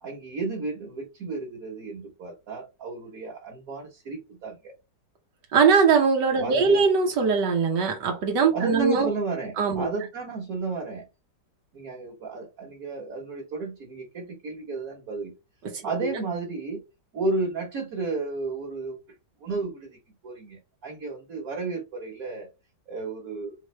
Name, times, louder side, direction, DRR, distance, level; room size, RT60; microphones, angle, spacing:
voice 1, 0.0-4.7 6.4-6.8 8.5-11.1 11.7-15.3 15.8-16.8 17.1-19.0 19.4-20.0 20.2-22.5 22.9-23.5, right 3 dB, 55° right, 1.7 m, -33 dB
voice 2, 5.5-9.1 9.6-9.9 15.7-16.2, right 5 dB, 85° right, 1.5 m, -21 dB
4.6 x 3.2 x 3.2 m
omnidirectional pair, 1.8 m